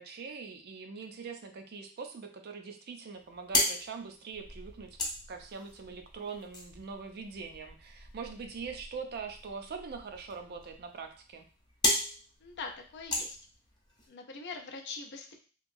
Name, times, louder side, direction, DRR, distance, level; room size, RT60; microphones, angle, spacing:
voice 1, 0.0-5.0 5.3-11.4, right 5 dB, 50° right, 5 dB, 0.4 m, -42 dB
sound 1, 3.1-14.1, left 1 dB, 20° left, 0.8 m, -37 dB
voice 2, 12.4-13.4 14.1-15.4, left 4 dB, 55° left, 3 dB, 0.5 m, -42 dB
2.9 x 2.7 x 2.6 m, 0.38 s
head